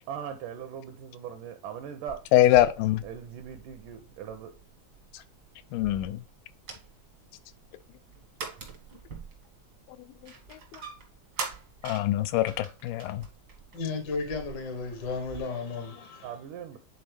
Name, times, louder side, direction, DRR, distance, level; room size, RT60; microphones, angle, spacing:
voice 1, 0.1-2.2 3.0-4.6 16.2-16.8, right 8 dB, 80° right, 2.0 m, -39 dB
sound 1, 2.1-15.4, right 5 dB, 60° right, 1.0 m, -45 dB
voice 2, 2.3-3.0 5.7-6.2 11.8-13.2, left 14 dB, 90° left, 2.4 m, -23 dB
voice 3, 13.7-16.3, left 4 dB, 65° left, 1.0 m, -34 dB
9.7 x 3.9 x 3.3 m
omnidirectional pair, 4.1 m